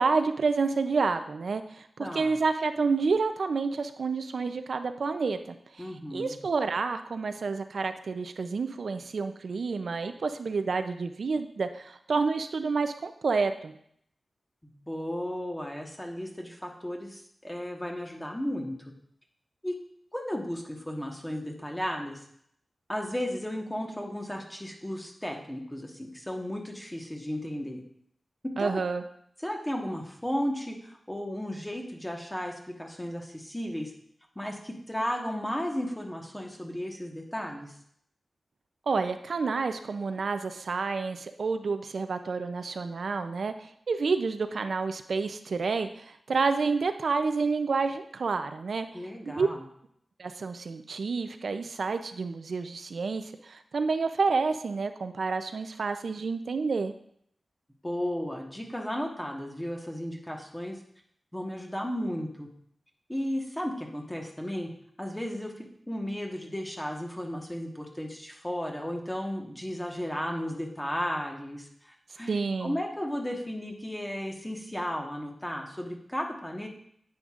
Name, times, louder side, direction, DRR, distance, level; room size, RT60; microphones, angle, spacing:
voice 1, 0.0-5.4 5.7-13.8 28.6-29.0 38.9-48.9 49.4-49.5 50.2-56.9 72.3-72.8, right 4 dB, 70° right, 8 dB, 0.5 m, -29 dB
voice 2, 2.0-2.4 5.8-6.3 14.6-18.9 19.6-19.7 20.1-22.2 22.9-27.8 28.6-28.8 29.4-33.9 34.3-37.7 48.9-49.6 57.8-60.8 61.3-62.5 63.1-64.7 65.0-76.7, equal, 10° left, 1 dB, 1.2 m, -34 dB
10.0 x 8.5 x 2.5 m, 0.68 s
wide cardioid pair, 130°, 0 cm